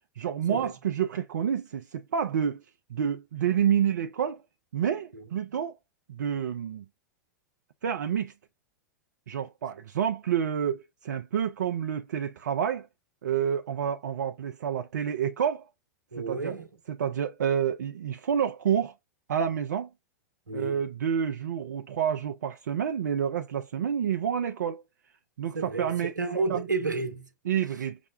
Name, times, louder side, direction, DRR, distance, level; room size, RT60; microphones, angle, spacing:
voice 1, 0.2-2.6 2.9-4.4 4.7-5.7 6.1-6.8 7.8-8.3 9.3-12.9 13.2-15.7 16.2-16.6 16.9-18.9 19.3-19.9 20.5-24.8 25.4-26.2 26.5-26.6 27.4-28.0, right 8 dB, 70° right, 0.5 m, -28 dB
voice 2, 16.1-16.7 20.5-20.8 25.5-27.3, right 3 dB, 90° right, 1.0 m, -31 dB
6.0 x 2.1 x 2.4 m
figure-of-eight pair, 95°, 10 cm